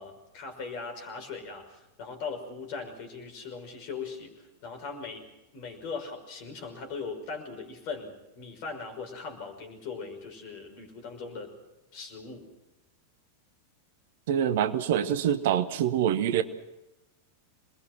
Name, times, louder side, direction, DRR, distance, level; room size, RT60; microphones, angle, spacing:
voice 1, 0.0-11.5 11.9-12.5, left 4 dB, 45° left, 5 dB, 5.7 m, -39 dB
voice 2, 14.3-16.4, right 9 dB, 55° right, 12 dB, 1.2 m, -25 dB
27.5 x 21.0 x 6.1 m, 0.94 s
figure-of-eight pair, 90°, 0 cm